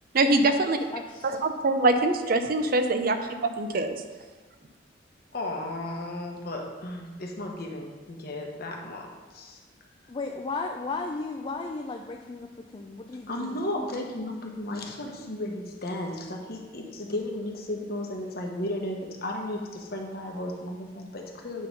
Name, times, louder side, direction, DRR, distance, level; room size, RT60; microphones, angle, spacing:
voice 1, 0.1-0.8 1.2-3.2 3.4-4.0, right 2 dB, 55° right, 7 dB, 0.6 m, -23 dB
voice 2, 0.8-1.4 10.1-13.6, left 3 dB, 30° left, 3 dB, 0.4 m, -35 dB
voice 3, 5.3-9.6 13.3-21.7, left 1 dB, 55° left, 1 dB, 1.1 m, -34 dB
8.9 x 3.8 x 5.4 m, 1.3 s
head